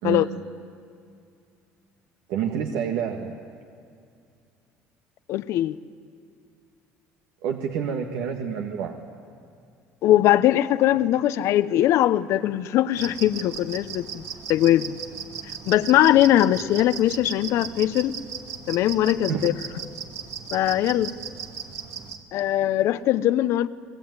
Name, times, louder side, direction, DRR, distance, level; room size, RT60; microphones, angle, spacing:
voice 1, 0.0-0.4 2.3-3.3 7.4-9.0 19.3-19.5, right 8 dB, 85° right, 2 dB, 1.9 m, -28 dB
voice 2, 5.3-5.8 10.0-14.2 14.5-14.9 15.7-18.1 18.7-19.5 20.5-21.1 22.3-23.7, left 13 dB, 65° left, 13 dB, 0.8 m, -21 dB
sound 1, 12.9-22.2, right 7 dB, 65° right, 2.6 m, -37 dB
30.0 x 20.5 x 9.7 m, 2.3 s
cardioid pair, 130°, 5 cm